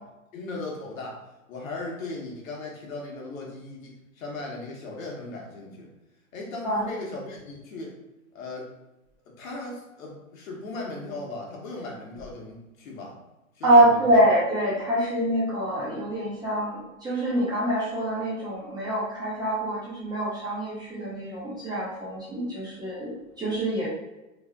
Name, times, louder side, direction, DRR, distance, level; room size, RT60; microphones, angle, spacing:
voice 1, 0.3-5.9 6.3-8.0 8.3-8.7 9.3-13.2 13.6-14.2, left 2 dB, 65° left, -1 dB, 1.2 m, -37 dB
voice 2, 13.6-23.9, right 1 dB, 10° right, -7 dB, 0.5 m, -25 dB
3.3 x 3.2 x 2.2 m, 1.0 s
hypercardioid pair, 125°, 43 cm